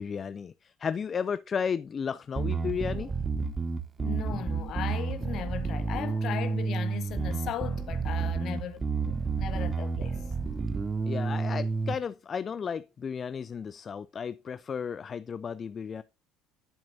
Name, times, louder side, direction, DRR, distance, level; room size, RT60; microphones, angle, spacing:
voice 1, 0.0-3.1 11.1-16.0, left 6 dB, 35° left, 0.3 m, -34 dB
Bass guitar, 2.4-11.9, right 4 dB, 30° right, 0.8 m, -30 dB
voice 2, 4.0-10.2, left 10 dB, 55° left, 1.0 m, -37 dB
10.5 x 7.1 x 2.6 m
figure-of-eight pair, 60°, 0 cm